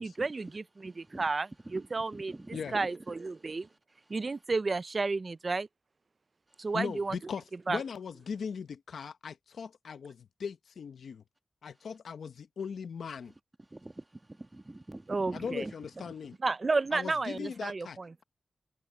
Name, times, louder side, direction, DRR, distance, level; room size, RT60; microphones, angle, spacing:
voice 1, 0.0-1.5 1.7-2.3 2.7-3.7 4.1-5.7 6.6-7.2 7.7-7.8 15.1-15.7 16.4-18.1, right 3 dB, 35° right, 0.3 m, -32 dB
voice 2, 0.8-1.3 1.6-2.9 3.3-4.2 6.5-6.7 13.6-15.7 16.1-16.2, right 2 dB, 15° right, 1.3 m, -47 dB
voice 3, 6.7-11.2 11.6-13.3 15.3-16.4 16.9-18.2, left 6 dB, 80° left, 0.9 m, -39 dB
wide cardioid pair, 135°, 0 cm